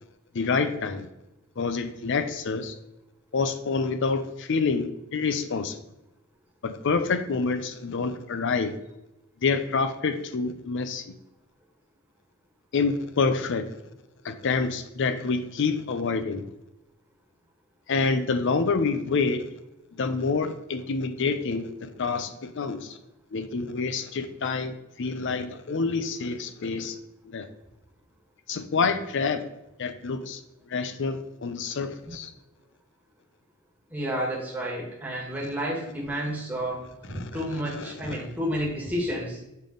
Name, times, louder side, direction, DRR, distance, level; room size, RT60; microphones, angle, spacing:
voice 1, 0.3-1.1 1.6-2.7 3.3-5.8 6.6-8.7 9.4-11.1 12.7-13.8 14.2-16.4 17.9-19.5 20.0-23.0 23.3-27.0 27.2-27.5 28.5-29.4 29.8-30.4 30.7-32.3 37.1-38.3, left 4 dB, 60° left, 10 dB, 0.5 m, -27 dB
voice 2, 33.9-39.4, equal, 5° right, -4 dB, 1.4 m, -31 dB
7.4 x 3.5 x 3.8 m, 0.92 s
head